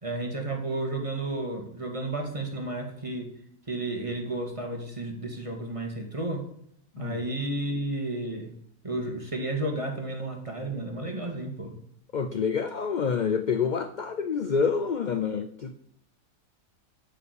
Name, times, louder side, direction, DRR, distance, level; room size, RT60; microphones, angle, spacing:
voice 1, 0.0-3.3 3.7-6.4 7.0-8.6 8.8-11.7, right 2 dB, 20° right, 2 dB, 2.0 m, -32 dB
voice 2, 12.1-15.8, left 6 dB, 50° left, 10 dB, 0.5 m, -27 dB
11.5 x 5.7 x 8.3 m, 0.69 s
omnidirectional pair, 1.5 m